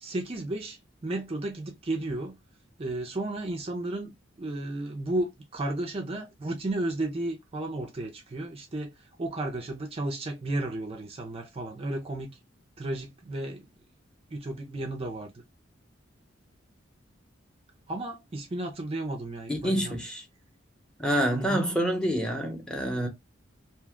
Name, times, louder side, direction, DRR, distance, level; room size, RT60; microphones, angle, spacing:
voice 1, 0.0-2.4 2.8-12.3 12.8-13.7 14.3-15.4 17.9-20.0 21.3-21.6, right 2 dB, 30° right, 0.4 m, -33 dB
voice 2, 19.5-20.2 21.0-23.1, equal, 5° left, 0.8 m, -27 dB
2.8 x 2.2 x 3.5 m
head